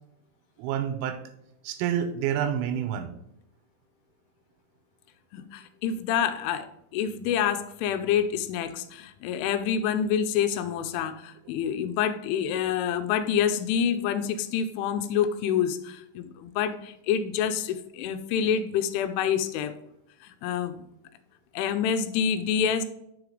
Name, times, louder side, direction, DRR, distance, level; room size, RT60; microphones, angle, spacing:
voice 1, 0.6-1.2 1.6-3.1, right 9 dB, 85° right, 8 dB, 3.2 m, -28 dB
voice 2, 5.3-19.8 20.2-20.9 21.5-22.8, left 8 dB, 85° left, 10 dB, 3.0 m, -27 dB
6.4 x 4.9 x 5.0 m, 0.80 s
omnidirectional pair, 5.6 m